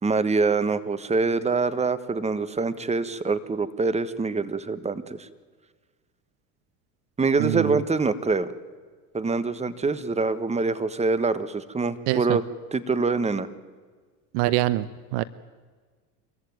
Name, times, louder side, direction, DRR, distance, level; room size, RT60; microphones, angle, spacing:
voice 1, 0.0-5.3 7.2-8.5 9.1-12.4 12.7-13.5, right 4 dB, 15° right, 14 dB, 1.3 m, -25 dB
voice 2, 7.4-7.8 12.1-12.4 14.3-15.2, right 17 dB, 60° right, 17 dB, 0.8 m, -25 dB
26.0 x 14.5 x 9.5 m, 1.5 s
hypercardioid pair, 90°, 46 cm